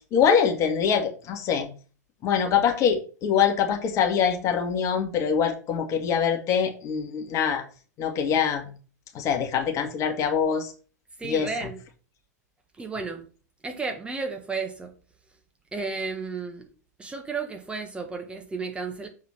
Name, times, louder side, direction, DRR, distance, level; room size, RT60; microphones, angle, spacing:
voice 1, 0.1-1.7 2.2-7.6 8.0-8.7 9.1-10.7 11.2-11.5, left 7 dB, 35° left, 1.9 m, -24 dB
voice 2, 11.2-11.8 12.8-13.3 13.6-14.9 15.7-16.7 17.0-19.1, right 4 dB, 10° right, 1.5 m, -33 dB
7.3 x 4.1 x 6.4 m
figure-of-eight pair, 95°, 9 cm